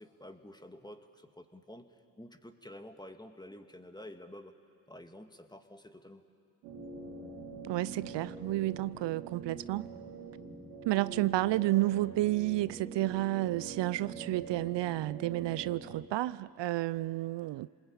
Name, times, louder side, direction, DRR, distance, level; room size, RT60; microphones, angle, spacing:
voice 1, 0.0-1.9 2.2-4.5 4.9-6.2, left 1 dB, 10° left, 2.1 m, -49 dB
sound 1, 6.6-16.0, right 4 dB, 85° right, 3.5 m, -45 dB
voice 2, 7.6-9.9 10.9-17.7, right 17 dB, 60° right, 0.6 m, -31 dB
28.0 x 20.5 x 8.9 m
hypercardioid pair, 50°, 49 cm